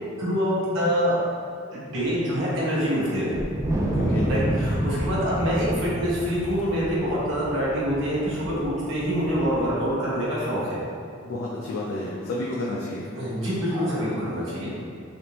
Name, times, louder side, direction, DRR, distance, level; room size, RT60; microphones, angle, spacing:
voice 1, 0.2-1.2 1.7-3.4 4.2-10.8 13.2-14.7, equal, 75° right, -8 dB, 1.0 m, -25 dB
Wind, 3.3-9.9, right 1 dB, 15° right, 0.4 m, -29 dB
voice 2, 3.9-4.4 11.2-13.1, left 2 dB, 75° left, -5 dB, 0.4 m, -30 dB
3.5 x 2.5 x 2.8 m, 2.3 s
head